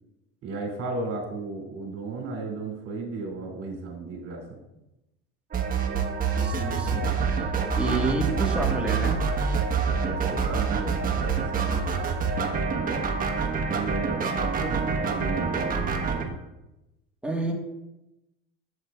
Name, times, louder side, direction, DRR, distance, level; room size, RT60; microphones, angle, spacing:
voice 1, 0.4-4.4 10.0-12.1 12.6-13.1 13.7-16.4, right 3 dB, 50° right, -1 dB, 2.8 m, -35 dB
sound 1, 5.5-16.2, right 5 dB, 30° right, 1.2 m, -26 dB
voice 2, 6.4-7.1 7.4-7.5 7.7-9.2 17.2-17.5, right 2 dB, 5° right, -1 dB, 1.6 m, -29 dB
8.0 x 7.5 x 2.4 m, 0.95 s
supercardioid pair, 90°, 29 cm